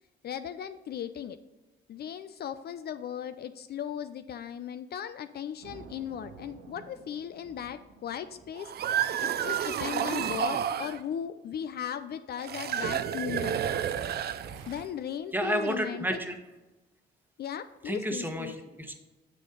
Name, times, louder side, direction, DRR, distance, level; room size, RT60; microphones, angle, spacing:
voice 1, 0.2-1.4 1.9-8.7 9.2-13.6 14.7-16.1 17.4-18.5, left 9 dB, 55° left, 11 dB, 0.4 m, -37 dB
sound 1, 5.6-11.1 11.8-11.9 13.8-14.8, right 5 dB, 75° right, 1.0 m, -51 dB
sound 2, 8.6-11.0 12.4-14.8, right 9 dB, 55° right, 0.5 m, -30 dB
voice 2, 15.3-16.4 17.8-18.9, equal, 10° right, 5 dB, 1.1 m, -31 dB
7.1 x 6.6 x 3.9 m, 1.1 s
cardioid pair, 90°, 20 cm